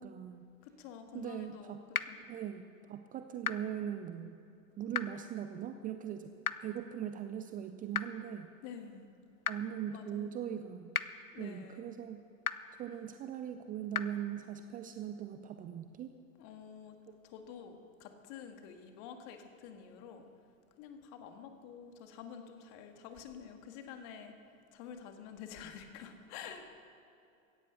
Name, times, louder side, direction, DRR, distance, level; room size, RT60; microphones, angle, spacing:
voice 1, 0.0-0.5 1.1-1.8 2.3-4.4 4.8-6.3 6.6-8.5 9.5-10.9 11.4-12.2 12.8-16.1 17.1-17.2, right 9 dB, 20° right, 9 dB, 0.5 m, -40 dB
voice 2, 0.6-2.2 8.6-9.1 9.9-10.7 11.3-12.0 12.9-13.0 16.4-17.0 17.2-20.3 20.8-24.3 24.7-26.7, left 7 dB, 45° left, 6 dB, 2.0 m, -49 dB
sound 1, 1.9-2.0 3.4-3.5 4.9-5.0 6.4-6.5 7.9-8.0 9.4-9.5 10.9-11.0 12.4-12.5 13.9-14.0, left 6 dB, 90° left, 0.7 m, -32 dB
16.5 x 14.5 x 5.7 m, 2.6 s
figure-of-eight pair, 85°, 42 cm